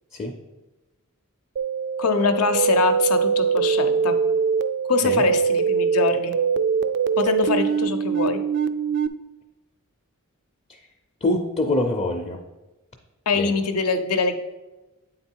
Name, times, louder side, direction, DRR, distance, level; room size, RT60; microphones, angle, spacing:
sound 1, 1.6-9.1, right 6 dB, 50° right, 0.3 m, -23 dB
voice 1, 2.0-4.1 4.9-6.4 7.2-8.4 13.3-14.3, left 4 dB, 80° left, 8 dB, 0.7 m, -23 dB
voice 2, 11.2-12.4 13.3-13.5, left 2 dB, 30° left, 1 dB, 0.5 m, -25 dB
8.8 x 3.9 x 4.5 m, 1.1 s
head